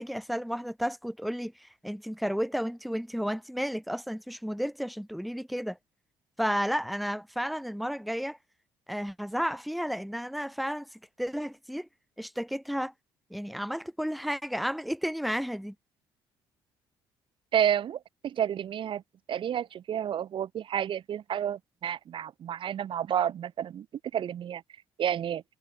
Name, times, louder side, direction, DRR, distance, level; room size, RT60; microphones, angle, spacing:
voice 1, 0.0-5.8 6.4-8.4 8.9-10.9 11.2-11.9 12.2-12.9 13.3-15.7, equal, ahead, 0.6 m, -32 dB
voice 2, 17.5-19.0 19.3-23.9 24.1-24.6 25.0-25.4, right 9 dB, 45° right, 0.5 m, -30 dB
hypercardioid pair, 50°, 12 cm